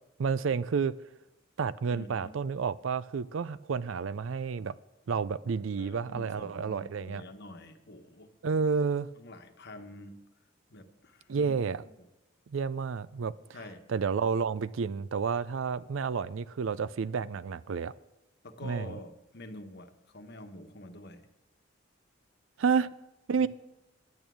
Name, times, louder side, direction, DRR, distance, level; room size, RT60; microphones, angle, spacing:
voice 1, 0.2-1.0 1.6-4.7 5.1-7.2 8.4-9.1 11.3-11.8 12.5-13.3 13.9-17.9 18.6-18.9 22.6-22.9 23.3-23.5, right 5 dB, 70° right, 0.4 m, -30 dB
voice 2, 1.9-2.3 5.8-8.3 9.2-10.2 10.7-11.9 13.5-13.8 18.4-21.3 23.4-23.5, left 1 dB, 55° left, 1.2 m, -47 dB
10.5 x 9.3 x 6.3 m
head